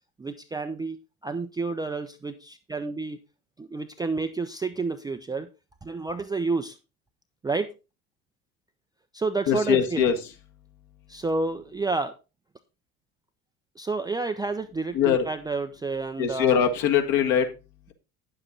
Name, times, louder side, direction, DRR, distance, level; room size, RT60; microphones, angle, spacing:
voice 1, 0.2-1.0 1.2-3.2 3.6-5.5 5.8-6.8 7.4-7.7 9.1-10.1 11.1-12.1 13.8-16.6, right 3 dB, 10° right, 7 dB, 0.5 m, -30 dB
voice 2, 9.5-10.1 15.0-15.3 16.2-17.5, left 8 dB, 50° left, 6 dB, 1.8 m, -22 dB
9.6 x 7.5 x 3.8 m, 0.29 s
figure-of-eight pair, 65°, 44 cm